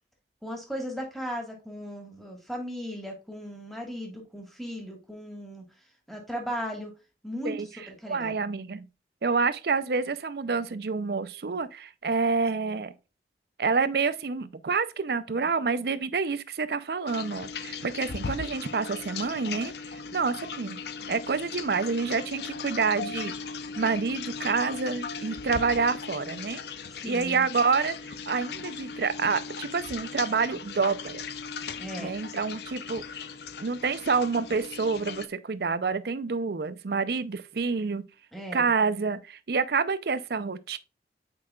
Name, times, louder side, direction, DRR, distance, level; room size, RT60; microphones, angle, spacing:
voice 1, 0.4-5.6 6.1-6.9 7.2-7.6 7.9-8.4 17.9-18.1 26.9-27.4 31.7-32.1 38.3-38.7, equal, ahead, 1.5 m, -37 dB
voice 2, 8.1-8.9 9.2-12.9 13.6-19.7 20.1-20.8 21.1-23.3 23.8-26.6 27.0-31.2 32.0-33.0 33.6-38.0 38.5-40.8, right 4 dB, 60° right, 0.5 m, -28 dB
sound 1, 17.1-35.3, left 5 dB, 65° left, 0.6 m, -38 dB
8.6 x 4.8 x 2.3 m
head